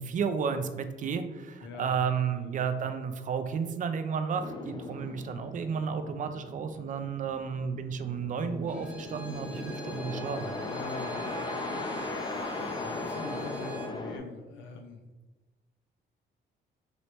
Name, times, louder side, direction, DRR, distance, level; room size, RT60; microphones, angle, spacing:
voice 1, 0.0-10.5, right 6 dB, 40° right, 9 dB, 0.4 m, -32 dB
voice 2, 1.6-2.7 8.3-8.5 10.6-12.0 12.6-15.0, left 3 dB, 75° left, 4 dB, 0.5 m, -44 dB
sound 1, 4.4-14.2, left 2 dB, 20° left, 0.5 m, -38 dB
Bowed string instrument, 8.7-14.0, right 1 dB, 5° right, 0.8 m, -47 dB
3.1 x 2.8 x 2.9 m, 1.2 s
cardioid pair, 90°, 20 cm